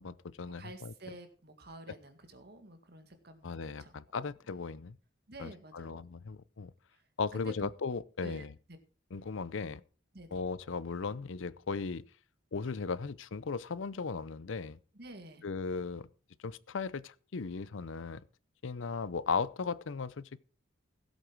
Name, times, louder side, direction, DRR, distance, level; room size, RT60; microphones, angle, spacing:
voice 1, 0.0-0.9 3.4-5.0 5.4-6.7 7.2-8.5 9.1-9.8 10.3-12.0 12.5-14.8 15.4-16.1 16.4-18.2 18.6-20.4, left 5 dB, 80° left, 0.6 m, -37 dB
voice 2, 0.6-4.0 5.3-6.0 6.9-7.0 7.3-7.7 8.2-8.5 10.1-10.4 14.9-15.5, right 1 dB, 55° right, 2.0 m, -49 dB
16.0 x 8.2 x 4.6 m
head